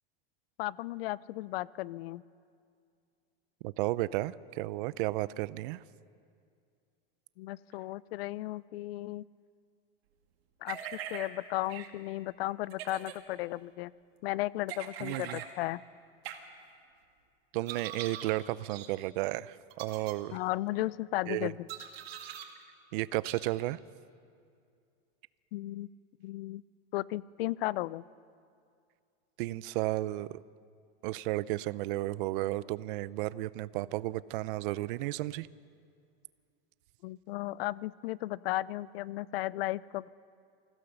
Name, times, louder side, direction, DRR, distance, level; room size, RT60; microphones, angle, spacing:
voice 1, 0.6-2.2 7.4-9.3 10.6-13.9 14.2-15.8 20.3-21.7 25.5-25.9 26.2-26.6 26.9-28.0 37.0-40.1, left 17 dB, 75° left, 21 dB, 0.5 m, -35 dB
voice 2, 3.6-5.8 15.0-15.4 17.5-20.4 21.3-21.5 22.9-23.8 29.4-30.4 31.0-35.5, right 17 dB, 60° right, 18 dB, 0.6 m, -33 dB
sound 1, 10.7-11.3 11.7-11.9 12.7-13.2 14.7-15.5 16.2-16.4 17.7-18.3 18.7-18.9 19.7-20.1 21.7-22.5 23.2-23.4, right 10 dB, 80° right, 2.2 m, -42 dB
24.5 x 16.0 x 6.9 m, 2.3 s
supercardioid pair, 150°, 30 cm